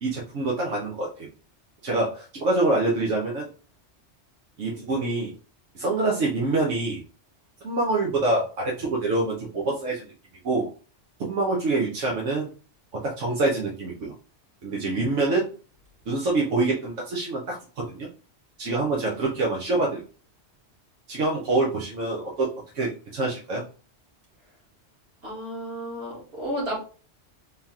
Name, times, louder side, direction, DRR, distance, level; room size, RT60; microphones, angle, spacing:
voice 1, 0.0-1.3 1.8-3.5 4.6-5.3 5.7-7.0 7.6-10.1 10.4-10.7 11.2-12.5 13.0-14.1 14.6-15.5 16.1-18.1 18.6-20.0 21.1-22.5 22.7-23.6, right 2 dB, 85° right, -3 dB, 1.2 m, -25 dB
voice 2, 25.2-26.8, equal, 55° right, -4 dB, 2.0 m, -32 dB
3.7 x 2.8 x 3.6 m, 0.38 s
omnidirectional pair, 1.2 m